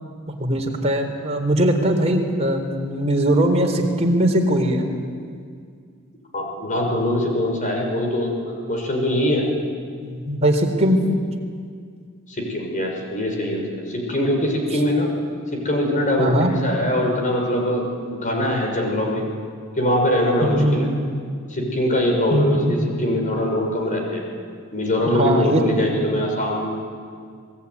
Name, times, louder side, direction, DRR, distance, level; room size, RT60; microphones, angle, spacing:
voice 1, 0.3-4.9 10.0-11.0 16.2-16.5 20.4-20.9 22.3-22.8 25.1-25.6, right 1 dB, 30° right, 1 dB, 4.0 m, -20 dB
voice 2, 6.3-9.4 12.3-15.1 15.5-19.3 19.8-20.9 21.5-24.2 24.7-26.7, left 1 dB, 35° left, 1 dB, 5.9 m, -22 dB
28.0 x 20.5 x 9.6 m, 2.2 s
head